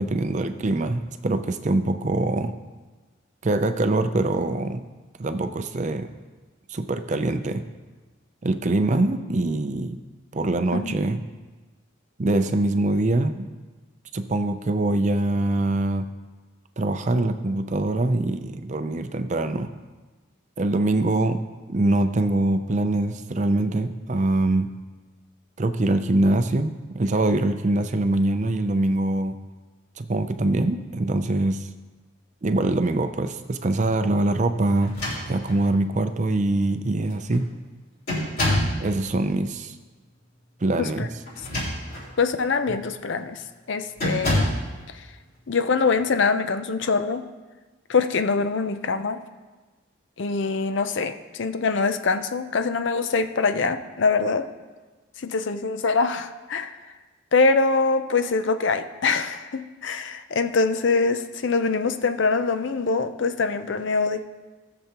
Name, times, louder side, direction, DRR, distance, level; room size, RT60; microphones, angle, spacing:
voice 1, 0.0-2.5 3.4-4.8 5.2-6.1 6.7-7.6 8.4-10.0 10.3-11.2 12.2-13.5 14.1-16.1 16.8-19.7 20.6-21.4 21.7-24.7 25.6-29.4 30.0-31.7 32.4-34.9 35.3-37.5 38.8-39.8 40.6-41.1, right 2 dB, 35° right, 9 dB, 0.5 m, -23 dB
sound 1, 34.8-35.7 36.6-36.7 37.0-37.4 38.1-38.8 41.2-42.1 42.7-42.9 44.0-44.7, left 1 dB, 45° left, 3.8 m, -26 dB
voice 2, 42.2-43.4 43.7-44.5 44.9-45.0 45.5-47.2 47.9-49.2 50.2-54.5 55.2-56.8 57.3-64.3, left 4 dB, 60° left, 10 dB, 0.5 m, -24 dB
18.0 x 6.9 x 3.0 m, 1.3 s
head